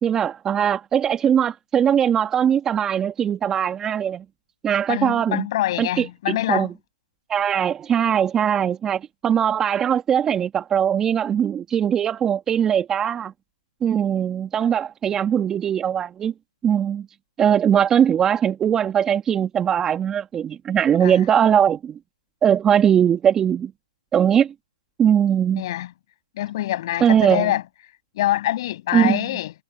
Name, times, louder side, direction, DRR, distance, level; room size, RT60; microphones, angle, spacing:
voice 1, 0.0-4.2 4.6-5.5 5.8-6.7 7.3-13.3 13.8-16.3 16.6-17.1 17.4-22.0 22.4-23.7 24.1-24.5 25.0-25.6 27.0-27.5 28.9-29.3, right 9 dB, 15° right, 2.0 m, -20 dB
voice 2, 4.9-6.7 21.0-21.2 25.6-25.9 26.4-27.6 28.1-29.5, left 14 dB, 45° left, 7.5 m, -25 dB
hypercardioid pair, 135°, 3 cm